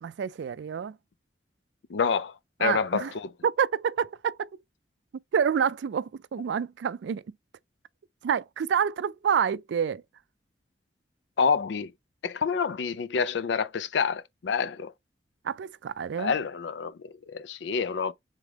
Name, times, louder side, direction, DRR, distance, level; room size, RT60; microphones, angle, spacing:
voice 1, 0.0-1.0 2.6-3.1 3.4-4.5 5.3-7.2 8.2-10.0 15.4-16.3, right 7 dB, 80° right, 0.3 m, -28 dB
voice 2, 1.9-2.3 2.6-3.3 11.4-11.9 12.2-14.9 16.2-18.1, left 6 dB, 80° left, 0.4 m, -28 dB
3.6 x 3.4 x 3.4 m
head